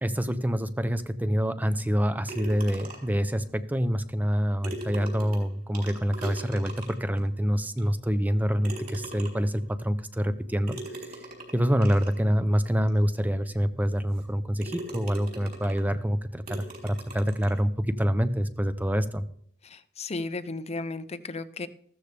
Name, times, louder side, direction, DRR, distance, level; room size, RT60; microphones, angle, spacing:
voice 1, 0.0-11.2 11.5-19.3, equal, 10° right, 11 dB, 0.6 m, -26 dB
sound 1, 2.3-3.2 4.3-4.4 4.6-7.2 7.8-7.9 8.6-9.6 10.7-12.2 12.9-13.0 13.5-13.6 14.1-14.3 14.6-15.9 16.5-17.6, right 2 dB, 45° right, 4.1 m, -40 dB
voice 2, 19.6-21.7, left 3 dB, 30° left, 13 dB, 0.6 m, -34 dB
15.0 x 13.5 x 3.4 m, 0.62 s
head